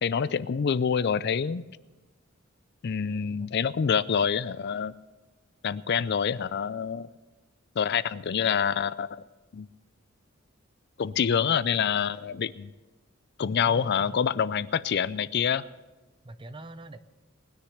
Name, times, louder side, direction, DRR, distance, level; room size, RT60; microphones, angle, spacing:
voice 1, 0.0-1.6 2.8-4.9 5.6-7.1 7.8-9.1 9.5-9.7 11.0-12.7 13.4-15.6, left 7 dB, 50° left, 17 dB, 0.4 m, -26 dB
voice 2, 13.4-14.2 16.2-17.0, right 2 dB, 25° right, 11 dB, 0.6 m, -44 dB
20.0 x 10.0 x 6.5 m, 1.1 s
head